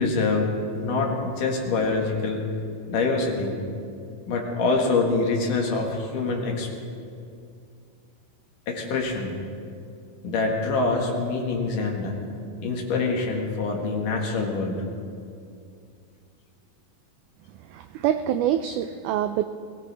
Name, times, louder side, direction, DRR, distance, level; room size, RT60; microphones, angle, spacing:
voice 1, 0.0-2.5 2.9-3.6 4.3-6.7 8.7-9.3 10.2-12.2 12.6-14.8, left 3 dB, 65° left, 0 dB, 3.2 m, -25 dB
voice 2, 18.0-19.4, right 11 dB, 85° right, 9 dB, 1.8 m, -24 dB
21.5 x 17.5 x 3.4 m, 2.4 s
omnidirectional pair, 4.1 m